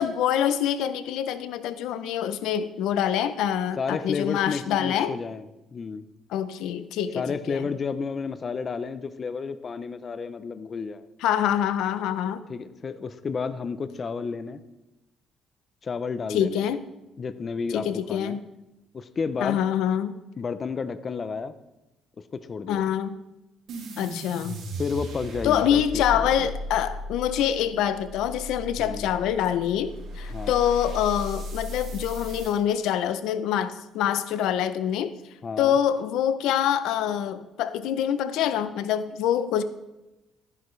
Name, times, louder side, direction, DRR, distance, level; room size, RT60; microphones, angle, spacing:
voice 1, 0.0-5.1 6.3-7.7 11.2-12.4 16.3-16.8 17.7-18.5 19.4-20.2 22.7-23.2 24.0-24.6 25.4-35.2 35.6-39.6, left 10 dB, 85° left, 13 dB, 0.6 m, -25 dB
voice 2, 3.8-5.5 5.7-6.0 7.1-11.1 12.5-14.6 15.8-16.7 17.2-18.4 18.9-19.6 20.4-21.5 22.3-22.9 24.8-26.5 28.8-29.1 30.3-30.6 35.4-35.8, left 5 dB, 30° left, 12 dB, 0.5 m, -31 dB
sound 1, 23.7-32.6, equal, 70° right, 4.1 m, -36 dB
12.5 x 10.5 x 3.2 m, 0.97 s
cardioid pair, 150°, 0 cm